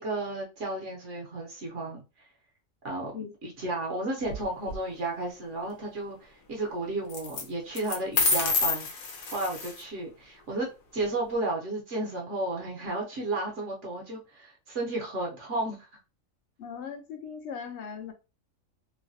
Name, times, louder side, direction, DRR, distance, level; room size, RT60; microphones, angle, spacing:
voice 1, 0.0-2.0 2.8-3.1 3.4-6.2 6.5-8.9 9.3-15.9, right 2 dB, 65° right, 1.1 m, -33 dB
sound 1, 4.2-4.8 7.1-7.4 7.8-9.8, left 4 dB, 85° left, 1.1 m, -28 dB
voice 2, 16.6-18.1, left 6 dB, 65° left, 0.8 m, -39 dB
3.1 x 2.2 x 2.6 m
omnidirectional pair, 1.4 m